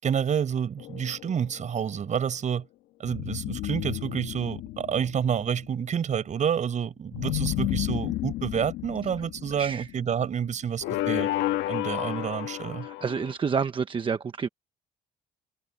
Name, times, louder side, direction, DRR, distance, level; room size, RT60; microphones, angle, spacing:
voice 1, 0.0-2.7 3.0-11.3 11.7-12.9, right 8 dB, 45° right, 7.8 m, -29 dB
sound 1, 0.8-1.7 3.0-5.7 7.1-10.2 10.8-13.3, left 16 dB, 90° left, 1.6 m, -32 dB
voice 2, 12.8-14.5, right 6 dB, 30° right, 1.0 m, -29 dB
cardioid pair, 110°, 17 cm